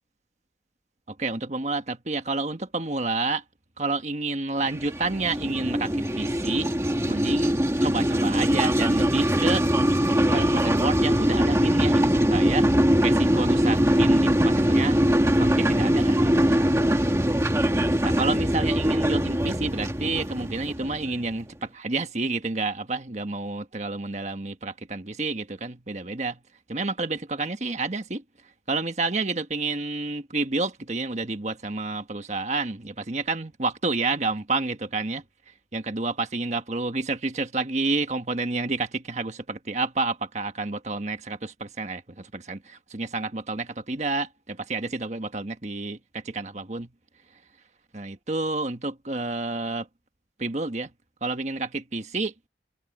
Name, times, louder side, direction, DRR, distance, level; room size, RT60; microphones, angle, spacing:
voice 1, 1.1-3.4 3.8-6.7 7.1-9.6 10.3-12.7 13.0-15.0 15.4-16.6 16.9-17.2 18.0-26.4 26.7-28.2 28.7-35.2 35.7-46.9 47.9-49.9 50.4-50.9 51.2-52.3, right 3 dB, 40° right, 1.4 m, -29 dB
sound 1, 4.7-21.3, equal, 15° right, 1.7 m, -22 dB
head